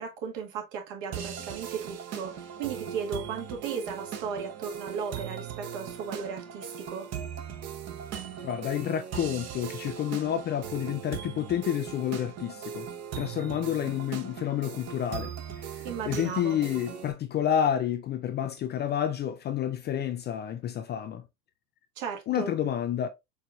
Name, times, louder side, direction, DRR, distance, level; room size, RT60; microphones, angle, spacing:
voice 1, 0.0-7.1 15.8-16.6 22.0-22.5, right 6 dB, 65° right, 1.8 m, -36 dB
sound 1, 1.1-17.1, right 8 dB, 35° right, 1.0 m, -39 dB
voice 2, 8.4-12.9 13.2-15.3 15.6-21.2 22.3-23.1, left 10 dB, 25° left, 0.4 m, -29 dB
4.7 x 4.4 x 2.4 m
hypercardioid pair, 85°, 43 cm